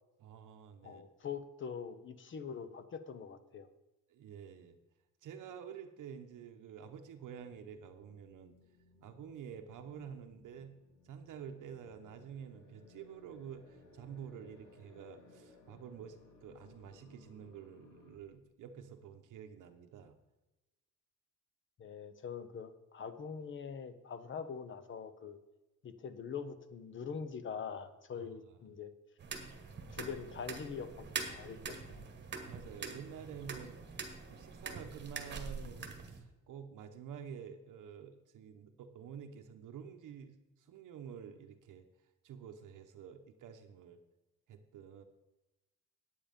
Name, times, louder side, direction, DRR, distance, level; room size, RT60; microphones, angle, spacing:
voice 1, 0.2-1.0 4.1-4.8 5.2-8.5 9.0-10.7 11.0-20.2 28.2-28.3 32.4-33.8 34.3-41.9 42.2-44.0 44.5-45.0, right 7 dB, 70° right, 6 dB, 0.9 m, -49 dB
voice 2, 0.8-3.7 21.8-25.4 25.8-28.9 29.9-32.0, left 6 dB, 40° left, 11 dB, 0.7 m, -43 dB
sound 1, 7.3-18.2, left 2 dB, 85° left, 3.4 m, -62 dB
sound 2, 29.2-36.2, right 5 dB, 35° right, 1.3 m, -44 dB
9.4 x 8.8 x 5.2 m, 1.0 s
cardioid pair, 170°, 32 cm